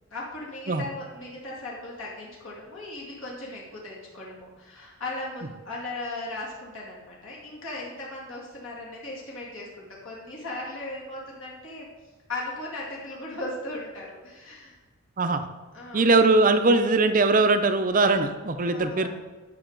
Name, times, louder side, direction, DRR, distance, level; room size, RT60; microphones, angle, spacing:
voice 1, 0.1-11.9 12.3-14.8 15.7-16.0 18.6-19.1, left 2 dB, 65° left, -5 dB, 2.2 m, -37 dB
voice 2, 15.9-19.1, right 3 dB, 35° right, 8 dB, 0.5 m, -21 dB
10.5 x 5.7 x 3.9 m, 1.3 s
head